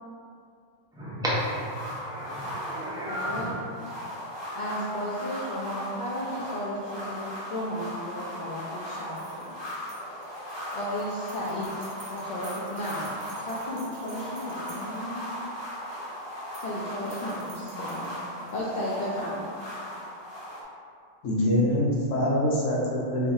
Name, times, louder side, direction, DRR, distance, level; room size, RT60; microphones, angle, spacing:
voice 1, 0.9-3.7, equal, 5° right, -9 dB, 0.3 m, -32 dB
sound 1, 1.3-20.6, equal, 25° left, 0.7 m, -38 dB
voice 2, 3.1-3.5 4.6-9.6 10.7-15.2 16.6-18.1 18.5-19.5, equal, 65° left, -7 dB, 0.4 m, -34 dB
sound 2, 9.1-15.2 16.3-16.8 17.0-18.6, right 4 dB, 50° right, 0.7 m, -51 dB
voice 3, 21.2-23.3, left 1 dB, 85° left, -2 dB, 0.9 m, -24 dB
2.6 x 2.4 x 4.0 m, 2.4 s
omnidirectional pair, 1.3 m